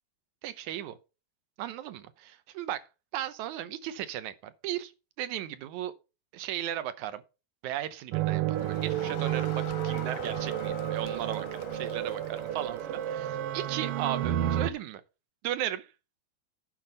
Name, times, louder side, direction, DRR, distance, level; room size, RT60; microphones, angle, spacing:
voice 1, 0.4-1.0 1.6-2.9 3.1-4.9 5.2-5.9 6.3-7.2 7.6-15.0 15.4-15.9, right 12 dB, 90° right, 2.3 m, -36 dB
sound 1, 8.1-14.7, right 12 dB, 75° right, 1.4 m, -31 dB
Crowd, 8.5-13.3, left 11 dB, 90° left, 2.3 m, -45 dB
10.0 x 4.4 x 6.6 m
omnidirectional pair, 3.3 m